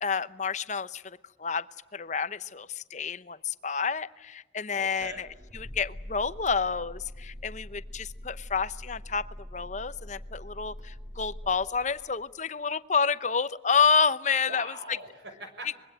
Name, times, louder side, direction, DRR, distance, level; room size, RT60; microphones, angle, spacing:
voice 1, 0.0-1.7 1.9-5.3 5.5-9.3 9.5-15.0, left 5 dB, 40° left, 14 dB, 0.8 m, -29 dB
voice 2, 4.7-5.3 11.4-12.1 14.4-15.8, right 2 dB, 65° right, 7 dB, 5.9 m, -44 dB
sound 1, 4.9-12.3, equal, 45° right, 4.3 m, -44 dB
25.5 x 22.5 x 9.0 m, 1.1 s
head